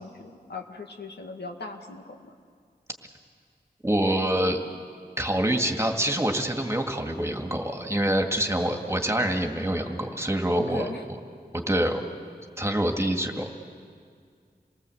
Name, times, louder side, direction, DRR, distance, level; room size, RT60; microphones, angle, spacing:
voice 1, 0.0-2.3 10.6-11.0, left 2 dB, 85° left, 2 dB, 1.9 m, -38 dB
voice 2, 3.8-4.6 5.2-11.2 11.5-12.0 12.6-13.6, right 1 dB, 15° right, 3 dB, 2.3 m, -26 dB
28.0 x 19.0 x 8.0 m, 2.1 s
wide cardioid pair, 55°, 17 cm